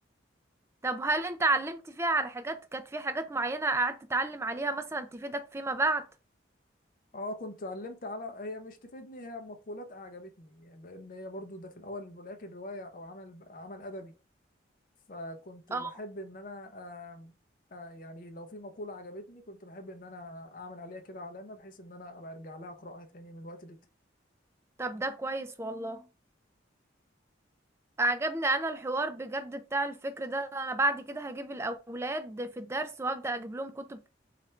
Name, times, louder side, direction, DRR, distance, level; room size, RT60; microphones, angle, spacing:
voice 1, 0.8-6.0 15.7-15.9 24.8-26.0 28.0-34.1, right 2 dB, 15° right, 0.3 m, -31 dB
voice 2, 7.1-14.1 15.1-17.4 17.7-23.8, left 1 dB, 45° left, 0.5 m, -43 dB
3.1 x 2.4 x 4.2 m
head